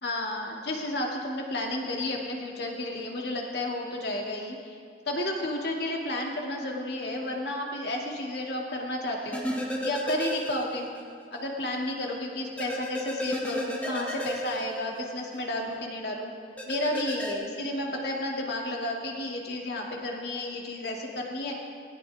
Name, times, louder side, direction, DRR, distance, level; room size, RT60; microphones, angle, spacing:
voice 1, 0.0-4.8 5.1-10.9 11.3-16.3 16.7-21.5, left 1 dB, 65° left, -1 dB, 2.4 m, -32 dB
sound 1, 9.3-11.0 11.3-11.4 12.6-15.4 16.6-17.3, equal, 10° left, 1.7 m, -33 dB
20.0 x 17.5 x 3.5 m, 2.2 s
head